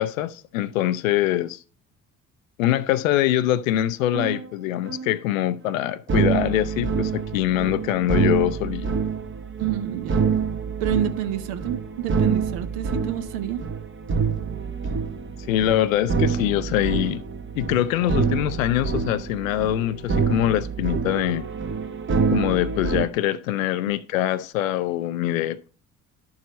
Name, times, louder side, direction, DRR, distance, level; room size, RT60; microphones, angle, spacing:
voice 1, 0.0-1.6 2.6-8.9 15.5-17.2 17.6-21.4 22.3-25.7, left 13 dB, 75° left, 0.5 m, -23 dB
sound 1, 4.1-4.5 4.8-5.2 6.1-23.1, right 5 dB, 30° right, 0.9 m, -26 dB
voice 2, 9.6-10.3 10.8-13.6, right 12 dB, 65° right, 0.8 m, -28 dB
11.0 x 4.8 x 4.1 m
figure-of-eight pair, 50°, 40 cm